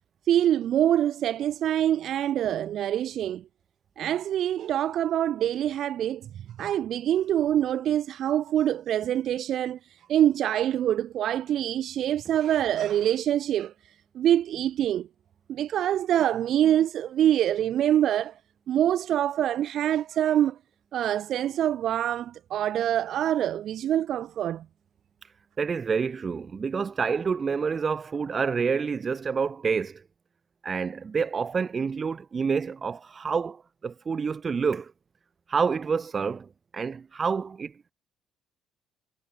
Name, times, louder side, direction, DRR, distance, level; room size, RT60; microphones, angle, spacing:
voice 1, 0.3-3.4 4.0-6.2 6.6-9.8 10.1-13.7 14.2-15.1 15.5-18.3 18.7-20.5 20.9-24.6, right 11 dB, 50° right, 0.4 m, -25 dB
voice 2, 25.6-30.0 30.6-34.9 35.5-37.7, right 5 dB, 25° right, 0.9 m, -28 dB
cardioid pair, 165°, 0 cm